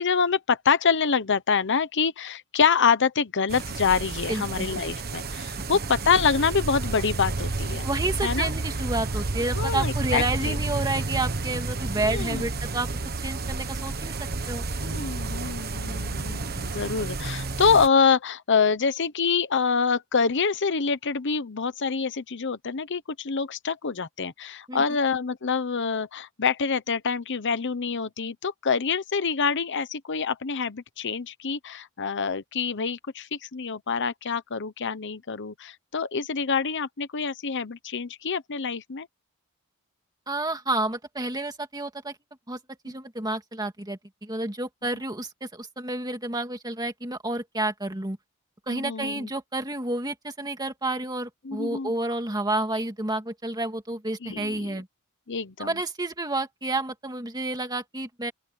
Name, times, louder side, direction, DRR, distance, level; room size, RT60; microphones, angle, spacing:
voice 1, 0.0-7.9 8.2-8.5 9.6-10.6 12.1-12.5 14.8-39.1 48.7-49.3 51.4-51.9 54.2-54.8 55.3-55.7, left 5 dB, 55° left, 0.9 m, -26 dB
sound 1, 3.5-17.9, right 3 dB, 45° right, 1.3 m, -31 dB
voice 2, 4.3-4.7 7.8-12.9 13.2-14.1 14.5-14.7 24.7-24.8 40.3-42.2 42.5-42.6 42.8-48.2 48.7-54.9 55.6-58.3, right 2 dB, 20° right, 2.2 m, -30 dB
open air
head